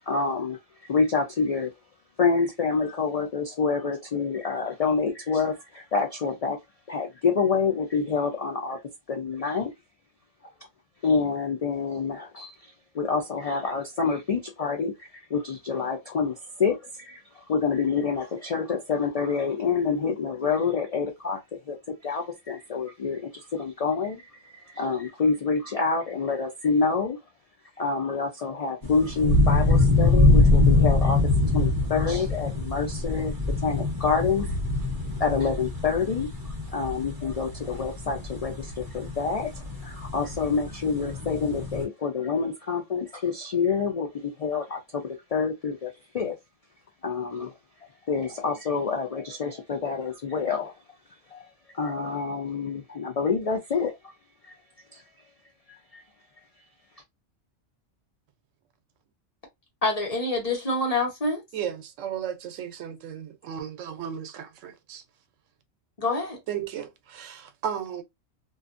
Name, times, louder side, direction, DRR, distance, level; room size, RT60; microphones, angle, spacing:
voice 1, 0.1-0.6 0.9-1.7 2.2-6.6 6.9-8.8 9.1-9.7 11.0-21.4 21.7-27.2 27.8-31.2 31.5-33.4 33.6-34.5 35.2-36.3 36.7-46.4 47.0-47.5 48.1-50.7 51.3-51.4 51.7-54.1 54.9-55.0 55.7-56.0, left 5 dB, 70° left, 0.3 m, -27 dB
sound 1, 28.8-41.8, left 2 dB, 20° right, 0.7 m, -24 dB
voice 2, 59.8-61.4 66.0-66.4, left 2 dB, 35° left, 0.9 m, -26 dB
voice 3, 61.5-65.0 66.5-68.0, right 9 dB, 90° right, 1.0 m, -34 dB
2.5 x 2.3 x 2.4 m
omnidirectional pair, 1.3 m